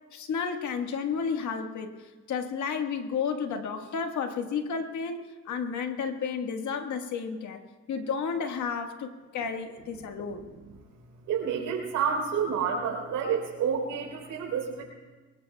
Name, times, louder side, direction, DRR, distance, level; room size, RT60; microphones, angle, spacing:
voice 1, 0.1-2.0 2.3-5.2 5.4-7.6 7.9-10.5, left 6 dB, 70° left, 5 dB, 1.5 m, -32 dB
voice 2, 11.3-14.8, right 7 dB, 85° right, 0 dB, 3.8 m, -29 dB
23.0 x 20.5 x 2.3 m, 1.3 s
cardioid pair, 90°, 30 cm